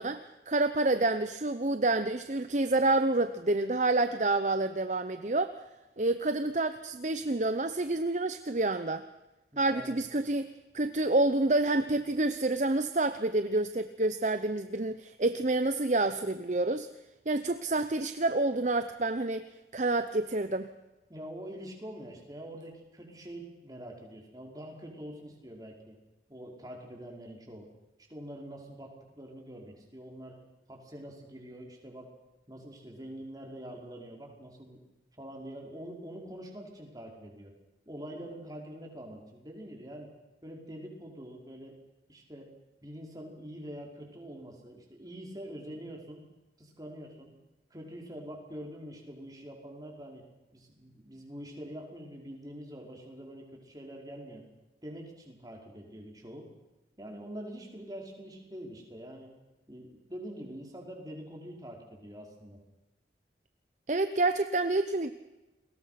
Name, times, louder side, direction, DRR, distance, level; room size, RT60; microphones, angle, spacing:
voice 1, 0.0-5.6 6.0-9.0 9.6-16.9 17.3-20.7 63.9-65.1, right 2 dB, 40° right, 10 dB, 0.9 m, -28 dB
voice 2, 9.5-10.0 21.1-26.0 26.3-27.7 28.1-30.4 30.7-32.1 32.5-34.8 35.2-37.5 37.9-40.1 40.4-41.7 42.1-42.5 42.8-46.2 46.6-47.3 47.7-50.3 50.5-54.4 54.8-56.5 57.0-59.3 59.7-62.6, equal, 20° right, 0 dB, 5.2 m, -45 dB
30.0 x 21.5 x 6.0 m, 1.0 s
head